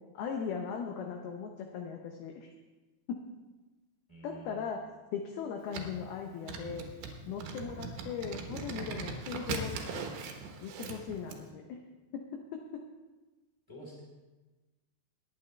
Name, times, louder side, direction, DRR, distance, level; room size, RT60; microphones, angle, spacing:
voice 1, 0.1-2.5 3.1-3.2 4.2-6.8 7.3-10.0 10.6-11.8 12.1-12.9, left 6 dB, 80° left, 2 dB, 2.3 m, -39 dB
voice 2, 4.1-4.7 13.7-14.0, right 1 dB, 5° right, -4 dB, 2.4 m, -49 dB
sound 1, 5.7-11.4, right 4 dB, 70° right, 3.2 m, -40 dB
21.0 x 9.7 x 3.3 m, 1.2 s
omnidirectional pair, 5.5 m